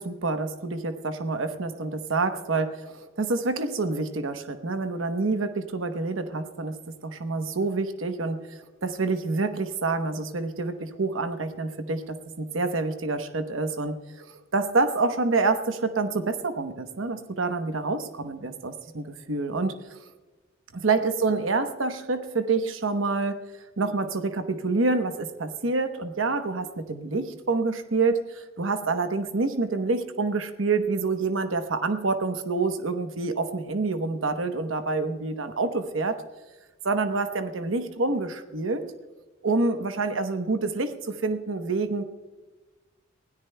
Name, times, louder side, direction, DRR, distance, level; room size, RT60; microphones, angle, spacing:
voice 1, 0.0-20.0 20.7-23.4 23.8-36.2 36.8-38.8 39.4-42.0, right 3 dB, 75° right, 7 dB, 0.9 m, -27 dB
24.5 x 17.0 x 2.2 m, 1.2 s
head